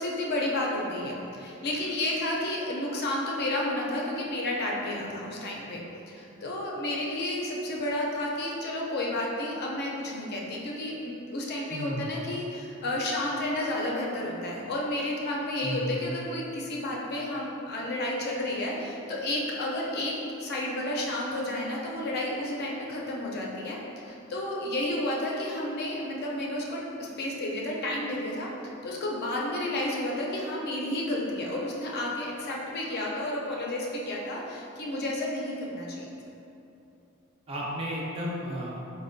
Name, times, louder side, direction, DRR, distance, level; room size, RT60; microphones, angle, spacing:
voice 1, 0.0-28.5 28.8-36.1, left 1 dB, 50° left, -3 dB, 0.4 m, -31 dB
voice 2, 11.7-12.1 15.6-16.1 37.5-38.8, equal, 25° right, -4 dB, 0.4 m, -33 dB
4.1 x 2.1 x 2.5 m, 2.8 s
head